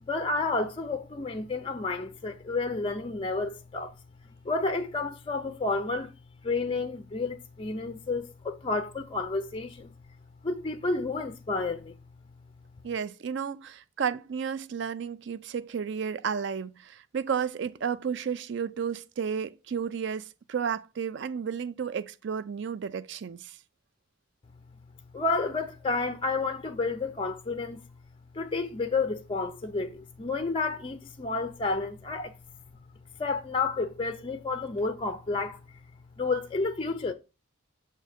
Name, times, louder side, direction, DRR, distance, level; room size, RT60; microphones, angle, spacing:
voice 1, 0.0-3.9 4.4-6.1 6.4-9.9 10.4-11.9 25.1-27.8 28.3-32.3 33.2-35.6 36.2-37.1, left 3 dB, 25° left, 0.4 m, -30 dB
voice 2, 12.8-23.6, right 7 dB, 55° right, 0.4 m, -32 dB
7.5 x 2.7 x 4.9 m
head